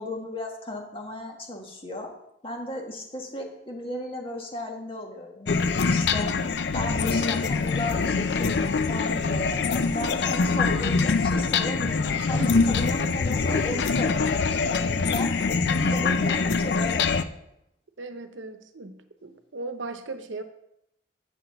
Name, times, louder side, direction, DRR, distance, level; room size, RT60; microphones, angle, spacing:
voice 1, 0.0-2.1 2.4-6.3 6.7-15.3 15.7-17.3, left 1 dB, 30° left, 1 dB, 1.4 m, -35 dB
sound 1, 5.5-17.2, left 4 dB, 65° left, 0.5 m, -24 dB
voice 2, 18.0-20.4, right 2 dB, 85° right, 9 dB, 0.8 m, -37 dB
7.7 x 6.0 x 6.7 m, 0.81 s
head